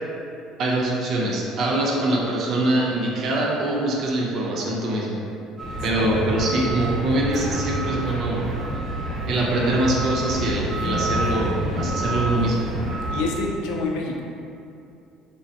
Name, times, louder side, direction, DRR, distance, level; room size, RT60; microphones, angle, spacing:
voice 1, 0.6-5.2 5.8-8.4 9.3-12.6, right 1 dB, 55° right, -3 dB, 0.4 m, -23 dB
sound 1, 5.6-13.2, right 1 dB, 10° right, 0.8 m, -28 dB
voice 2, 6.0-6.3 13.1-14.2, left 3 dB, 75° left, 0 dB, 0.3 m, -27 dB
2.5 x 2.1 x 2.6 m, 2.5 s
supercardioid pair, 80°, 0 cm